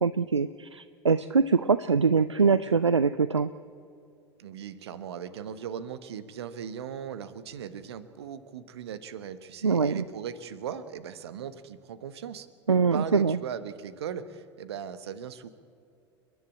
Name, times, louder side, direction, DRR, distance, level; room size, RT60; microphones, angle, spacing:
voice 1, 0.0-3.5 9.6-10.1 12.7-13.4, right 5 dB, 85° right, 15 dB, 0.4 m, -23 dB
voice 2, 4.4-15.5, right 8 dB, 65° right, 14 dB, 1.2 m, -38 dB
29.5 x 11.0 x 8.4 m, 2.5 s
figure-of-eight pair, 75°, 15 cm